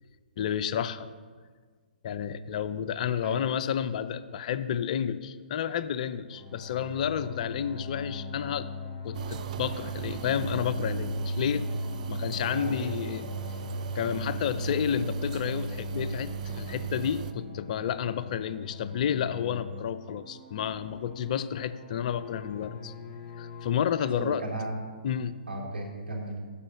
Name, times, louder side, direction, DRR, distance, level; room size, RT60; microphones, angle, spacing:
voice 1, 0.4-1.1 2.0-8.7 9.0-11.7 12.1-13.3 13.9-22.9 23.4-24.4 25.0-25.4, left 8 dB, 45° left, 13 dB, 0.5 m, -31 dB
sound 1, 6.3-23.7, left 4 dB, 20° left, 3.1 m, -41 dB
sound 2, 9.1-17.3, right 5 dB, 50° right, 0.5 m, -35 dB
voice 2, 12.3-12.8 24.0-24.8 25.5-26.4, right 2 dB, 85° right, -1 dB, 2.7 m, -35 dB
9.8 x 6.4 x 6.2 m, 1.5 s
figure-of-eight pair, 125°, 5 cm